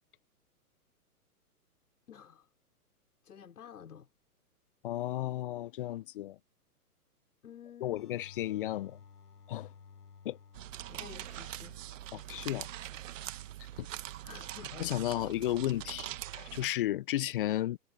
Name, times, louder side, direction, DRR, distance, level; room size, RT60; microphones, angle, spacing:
voice 1, 2.1-2.5 3.2-4.1 7.4-8.0 10.9-11.8 14.2-14.9, left 8 dB, 70° left, 5.2 m, -51 dB
voice 2, 4.8-6.4 7.8-9.0 9.5-9.7 10.2-10.4 12.1-12.7 14.8-17.8, left 14 dB, 35° left, 0.5 m, -33 dB
sound 1, 7.9-15.3, left 6 dB, 90° left, 5.1 m, -57 dB
sound 2, 10.5-16.7, right 13 dB, 55° right, 1.5 m, -43 dB
hypercardioid pair, 130°, 46 cm